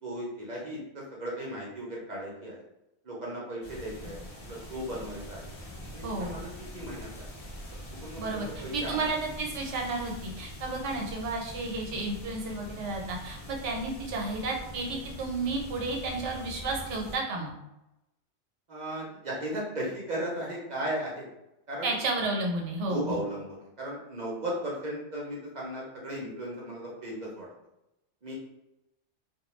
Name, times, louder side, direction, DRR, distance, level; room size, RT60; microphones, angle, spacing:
voice 1, 0.0-0.8 1.1-2.6 3.0-4.2 4.5-5.4 5.9-7.2 8.0-9.1 18.7-21.3 21.7-21.9 22.9-27.5 28.2-28.3, right 1 dB, 45° right, -4 dB, 0.6 m, -36 dB
sound 1, 3.6-17.2, equal, 45° left, 0.5 m, -43 dB
voice 2, 6.0-6.4 8.2-17.5 21.8-23.3, right 2 dB, 85° right, 0 dB, 1.0 m, -32 dB
2.2 x 2.2 x 3.0 m, 0.90 s
omnidirectional pair, 1.2 m